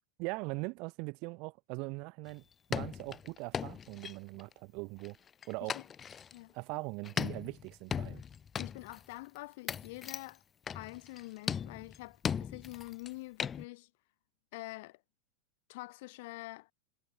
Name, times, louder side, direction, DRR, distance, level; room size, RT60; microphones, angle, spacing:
voice 1, 0.2-2.4 2.7-5.2 5.5-5.8 6.5-8.2, right 28 dB, 55° right, 0.7 m, -41 dB
sound 1, 2.3-2.4 2.7-4.5 5.1-6.4 7.1-9.0 9.4-9.5 9.7-10.3 10.7-11.2 11.5-13.1 13.4-13.6, left 7 dB, 25° left, 0.4 m, -38 dB
voice 2, 8.6-10.4 10.7-13.9 14.5-15.0 15.7-16.7, left 22 dB, 65° left, 3.7 m, -46 dB
hypercardioid pair, 100°, 0 cm